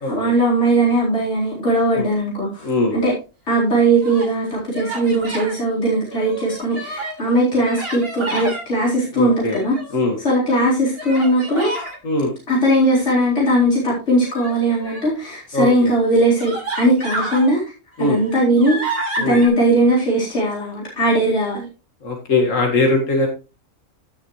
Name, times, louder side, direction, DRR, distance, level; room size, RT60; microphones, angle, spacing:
voice 1, 0.0-3.1 3.5-9.8 10.2-11.7 12.5-17.6 18.0-18.8 19.2-21.7, right 1 dB, 65° left, -6 dB, 4.5 m, -19 dB
voice 2, 2.6-3.0 9.2-9.6 9.9-10.2 12.0-12.3 15.5-15.9 18.0-18.2 19.2-19.4 22.0-23.3, left 2 dB, 80° left, 1 dB, 2.3 m, -20 dB
Human voice, 3.7-4.3 4.7-5.6 6.1-7.2 7.6-8.6 9.3-10.1 11.0-12.0 14.2-15.2 15.9-16.0 16.4-17.5 18.0-19.5, right 2 dB, 50° right, 3.5 m, -29 dB
16.5 x 6.8 x 3.1 m, 0.31 s
omnidirectional pair, 1.3 m